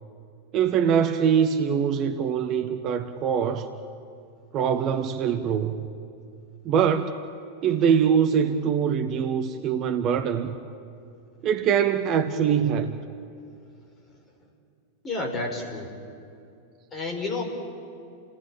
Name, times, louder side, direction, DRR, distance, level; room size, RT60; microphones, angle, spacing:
voice 1, 0.5-3.7 4.5-5.9 6.6-7.1 7.6-10.5 11.4-13.0, right 7 dB, 35° right, 9 dB, 1.2 m, -23 dB
voice 2, 15.0-15.9 16.9-17.4, left 2 dB, 20° left, 2 dB, 5.3 m, -30 dB
29.5 x 18.5 x 9.0 m, 2.6 s
figure-of-eight pair, 90°, 0 cm